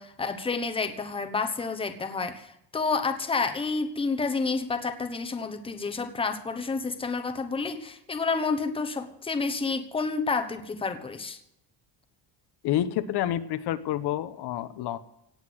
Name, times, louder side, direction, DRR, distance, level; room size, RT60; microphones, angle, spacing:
voice 1, 0.0-11.4, left 4 dB, 15° left, 7 dB, 1.1 m, -29 dB
voice 2, 12.6-15.0, left 12 dB, 70° left, 11 dB, 1.1 m, -28 dB
17.5 x 8.3 x 7.8 m, 0.80 s
cardioid pair, 170°, 41 cm